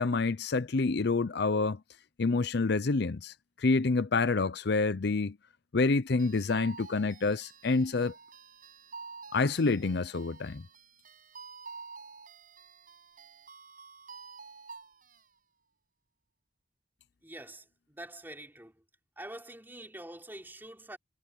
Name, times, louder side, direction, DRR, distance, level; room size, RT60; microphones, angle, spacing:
voice 1, 0.0-1.8 2.2-5.4 5.7-8.1 9.3-10.6, left 3 dB, 60° left, 0.6 m, -28 dB
sound 1, 6.2-15.3, right 5 dB, 45° right, 7.0 m, -49 dB
voice 2, 17.2-18.8 19.2-21.0, right 1 dB, 10° right, 3.7 m, -46 dB
head